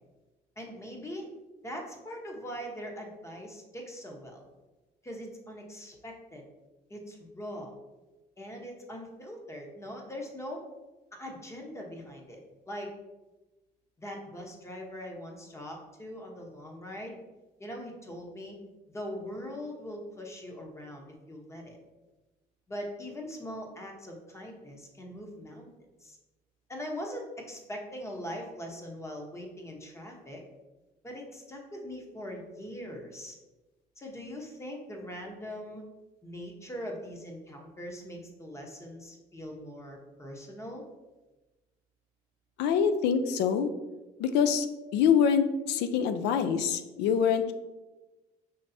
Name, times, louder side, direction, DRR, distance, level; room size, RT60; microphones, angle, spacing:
voice 1, 0.6-1.3 1.6-4.5 5.0-6.4 6.9-7.7 8.4-10.6 11.2-12.4 12.7-12.9 14.0-17.2 17.6-18.6 18.9-21.8 22.7-25.7 26.0-26.2 26.7-30.4 31.0-33.4 34.0-35.8 36.2-40.8, equal, 15° left, 1 dB, 0.9 m, -41 dB
voice 2, 42.6-43.7 44.2-44.7 44.9-47.5, left 7 dB, 90° left, 10 dB, 0.4 m, -25 dB
5.4 x 3.3 x 2.7 m, 1.1 s
cardioid pair, 110°, 17 cm